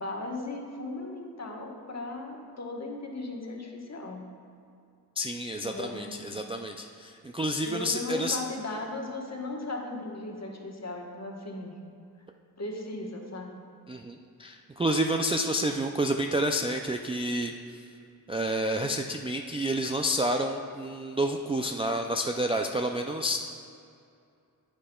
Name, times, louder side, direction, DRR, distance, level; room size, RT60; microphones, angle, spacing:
voice 1, 0.0-4.3 5.6-6.4 7.6-11.8 12.6-13.6, left 2 dB, 40° left, 0 dB, 1.2 m, -37 dB
voice 2, 5.2-8.4 13.9-17.9 18.3-23.4, right 1 dB, 15° right, 2 dB, 0.3 m, -29 dB
8.7 x 8.6 x 2.3 m, 2.4 s
cardioid pair, 55°, 40 cm